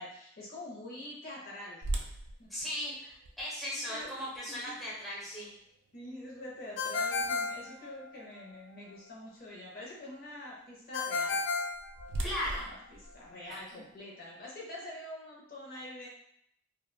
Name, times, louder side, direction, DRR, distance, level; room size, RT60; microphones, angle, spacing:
voice 1, 0.0-2.1 2.4-2.5 3.0-3.1 3.7-4.7 5.9-11.4 12.5-16.1, left 1 dB, 50° left, -4 dB, 0.7 m, -46 dB
sound 1, 1.8-7.8 8.3-8.4 9.0-9.2 11.3-14.0, right 1 dB, 75° right, 0.3 m, -42 dB
voice 2, 2.5-2.9 3.4-5.5 12.2-12.7 13.5-13.8, left 1 dB, ahead, -8 dB, 0.6 m, -37 dB
Ringtone, 6.8-8.4 10.9-12.6, left 4 dB, 90° left, 0.3 m, -33 dB
2.8 x 2.1 x 2.3 m, 0.72 s
head